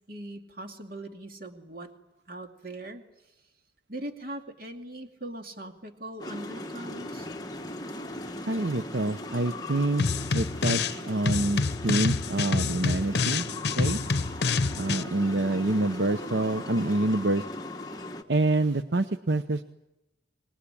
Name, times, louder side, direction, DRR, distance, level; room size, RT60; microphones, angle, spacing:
voice 1, 0.1-1.9 2.3-3.0 3.9-7.3, right 1 dB, 50° right, 4 dB, 2.5 m, -40 dB
sound 1, 6.2-18.2, left 1 dB, 20° left, 1.5 m, -38 dB
voice 2, 8.5-13.5 13.8-14.0 14.8-17.4 18.3-19.6, right 2 dB, 75° right, 10 dB, 0.9 m, -27 dB
sound 2, 10.0-11.0 11.3-15.0, left 4 dB, 65° left, 0.9 m, -27 dB
26.0 x 20.5 x 10.0 m, 0.95 s
head